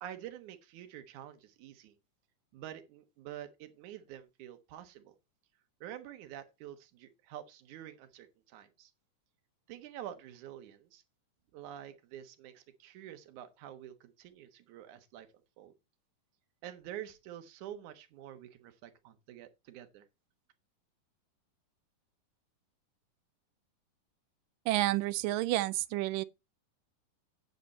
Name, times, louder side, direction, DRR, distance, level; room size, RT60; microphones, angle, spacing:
voice 1, 0.0-2.0 2.5-5.1 5.8-8.9 9.7-11.0 11.5-15.3 15.6-15.7 16.6-20.1, right 11 dB, 70° right, 2.6 m, -47 dB
voice 2, 24.7-26.3, right 16 dB, 85° right, 2.3 m, -30 dB
9.4 x 8.1 x 4.2 m
omnidirectional pair, 3.8 m